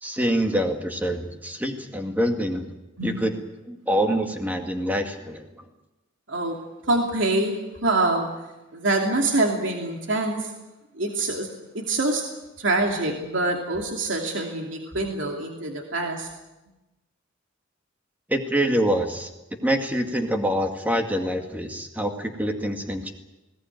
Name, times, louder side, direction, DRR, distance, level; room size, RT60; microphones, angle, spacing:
voice 1, 0.0-2.7 3.0-3.3 3.7-5.5 18.3-19.3 19.6-23.1, equal, 10° right, 4 dB, 2.1 m, -25 dB
voice 2, 6.9-8.3 8.7-10.5 10.9-11.5 11.7-12.3 12.6-16.3, right 2 dB, 65° right, 1 dB, 2.7 m, -25 dB
20.5 x 18.0 x 9.3 m, 1.0 s
head